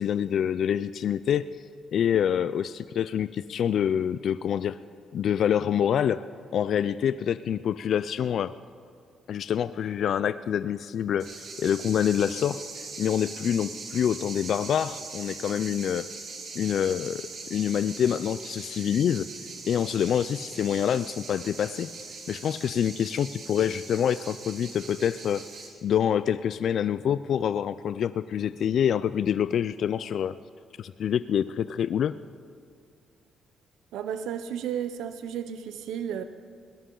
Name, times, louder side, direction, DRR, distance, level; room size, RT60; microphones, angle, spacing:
voice 1, 0.0-1.4 1.9-4.8 5.1-6.2 6.5-8.5 9.3-11.3 11.6-12.6 13.0-16.1 16.5-19.3 19.7-21.9 22.3-25.4 25.8-30.3 30.8-32.2, left 9 dB, 65° left, 14 dB, 0.3 m, -26 dB
sound 1, 11.2-25.7, right 4 dB, 60° right, 3.2 m, -41 dB
voice 2, 33.9-36.2, right 9 dB, 85° right, 10 dB, 0.6 m, -33 dB
21.5 x 17.5 x 3.9 m, 2.3 s
cardioid pair, 90°, 0 cm